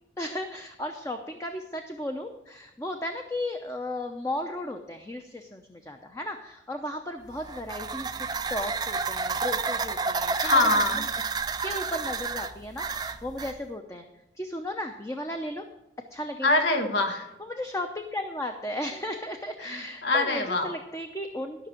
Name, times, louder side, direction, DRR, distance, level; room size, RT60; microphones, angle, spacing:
voice 1, 0.2-10.5 11.6-14.0 14.4-15.6 16.1-16.5 17.4-21.7, left 1 dB, 15° left, 5 dB, 0.7 m, -35 dB
sound 1, 7.3-13.6, right 5 dB, 25° right, 0.4 m, -30 dB
voice 2, 10.4-11.0 16.4-17.3 19.6-20.7, left 2 dB, 80° left, 4 dB, 1.5 m, -24 dB
13.0 x 6.0 x 7.7 m, 0.92 s
head